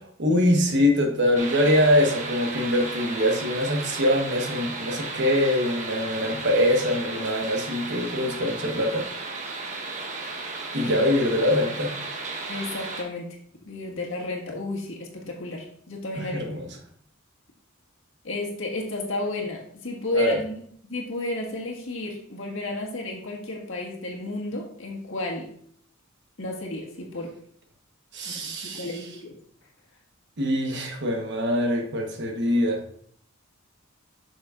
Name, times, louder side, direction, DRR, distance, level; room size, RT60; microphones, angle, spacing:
voice 1, 0.2-9.1 10.7-12.0 16.1-16.6 20.1-20.4 28.1-28.9 30.4-32.8, left 1 dB, 55° right, 1.2 m, -23 dB
sound 1, 1.3-13.0, right 3 dB, 35° right, 1.1 m, -34 dB
voice 2, 12.5-13.3 13.6-16.4 18.2-25.5 26.4-27.3 28.3-29.4, left 2 dB, 70° left, 1.7 m, -32 dB
8.6 x 6.3 x 2.5 m
head